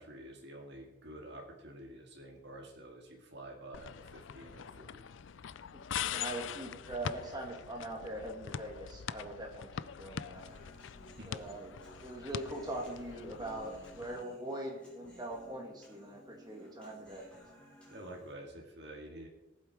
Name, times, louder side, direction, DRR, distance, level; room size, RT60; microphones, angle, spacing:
voice 1, 0.0-5.1 11.2-11.3 17.9-19.3, right 1 dB, 55° right, 0 dB, 2.0 m, -49 dB
sound 1, 3.7-14.2, left 8 dB, 65° left, 0.4 m, -43 dB
voice 2, 5.7-10.4 11.3-11.8 12.0-17.3, right 1 dB, 20° right, 0 dB, 2.4 m, -42 dB
Human voice, 10.3-18.3, right 1 dB, 5° left, 4.4 m, -57 dB
18.5 x 8.0 x 4.8 m, 1.0 s
head